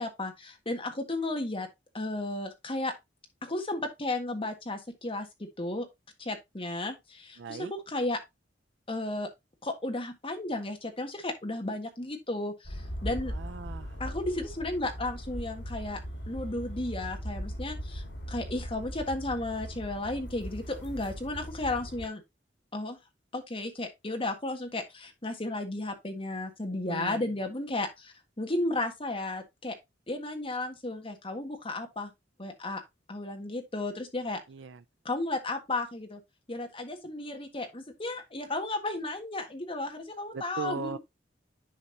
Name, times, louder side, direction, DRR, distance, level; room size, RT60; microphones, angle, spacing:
voice 1, 0.0-1.7 1.9-2.9 3.4-5.3 5.6-5.9 6.2-8.2 8.9-9.3 9.6-13.3 14.0-16.0 16.3-22.2 22.7-23.0 23.3-29.8 30.1-32.1 32.4-32.8 33.1-34.4 35.0-36.2 36.5-41.0, left 2 dB, 30° left, 1.6 m, -34 dB
voice 2, 7.4-7.7 13.3-14.0 26.9-27.3 34.5-34.8 40.3-41.0, right 5 dB, 85° right, 0.5 m, -38 dB
sound 1, 12.6-22.1, equal, 75° left, 4.5 m, -39 dB
10.0 x 5.3 x 2.7 m
head